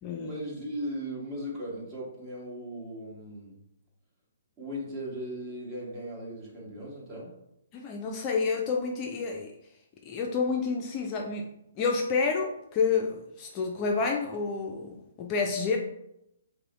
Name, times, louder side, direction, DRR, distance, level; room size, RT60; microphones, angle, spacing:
voice 1, 0.1-3.6 4.6-7.3, equal, 25° right, -5 dB, 1.5 m, -37 dB
voice 2, 7.7-9.5 10.1-11.5 11.8-15.8, left 5 dB, 30° left, 1 dB, 0.4 m, -29 dB
5.3 x 2.1 x 3.0 m, 0.81 s
figure-of-eight pair, 130°, 0 cm